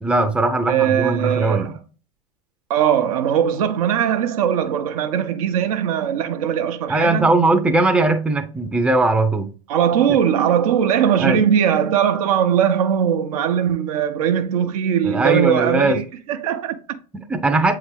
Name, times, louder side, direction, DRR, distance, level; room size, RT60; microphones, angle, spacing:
voice 1, 0.0-1.7 6.9-9.5 11.2-11.4 15.0-16.0 17.1-17.7, right 2 dB, 5° right, 0.7 m, -19 dB
voice 2, 0.7-1.7 2.7-7.3 9.7-17.0, right 9 dB, 60° right, 0.8 m, -20 dB
8.0 x 3.7 x 3.3 m
figure-of-eight pair, 85°, 21 cm